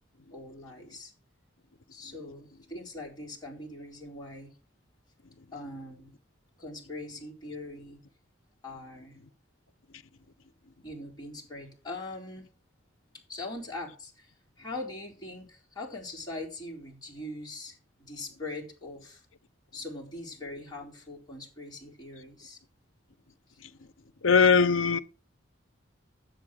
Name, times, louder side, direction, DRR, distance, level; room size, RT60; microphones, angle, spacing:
voice 1, 0.3-1.1 1.9-4.5 5.5-6.1 6.6-8.0 8.6-9.2 10.8-12.5 13.3-19.2 19.7-22.6 23.5-23.6, left 2 dB, 20° left, 4.4 m, -41 dB
voice 2, 24.2-25.0, left 5 dB, 80° left, 0.9 m, -20 dB
10.0 x 8.0 x 6.3 m
head